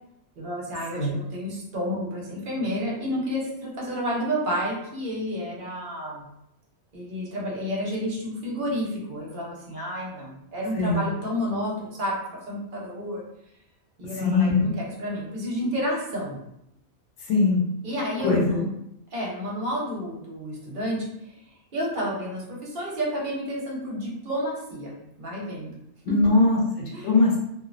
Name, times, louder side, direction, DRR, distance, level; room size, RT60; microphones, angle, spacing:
voice 1, 0.4-6.2 6.9-12.2 12.5-13.2 14.0-16.4 17.8-18.7 19.1-21.4 21.7-24.9 25.2-25.7 26.1-26.2 26.9-27.1, equal, 50° right, -4 dB, 0.9 m, -30 dB
voice 2, 14.1-14.7 17.3-17.6 18.2-18.6 26.0-27.4, left 3 dB, 90° left, -3 dB, 1.0 m, -21 dB
2.5 x 2.0 x 2.4 m, 0.78 s
omnidirectional pair, 1.2 m